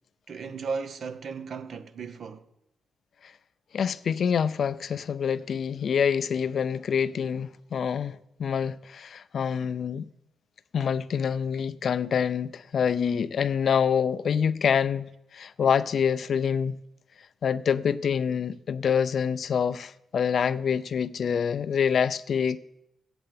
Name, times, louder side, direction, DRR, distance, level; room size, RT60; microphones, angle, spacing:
voice 1, 0.3-2.4, right 5 dB, 60° right, 0.7 m, -35 dB
voice 2, 3.7-10.1 10.7-16.8 17.4-22.6, left 7 dB, 60° left, 0.4 m, -26 dB
7.8 x 7.7 x 8.6 m
cardioid pair, 100°, 0 cm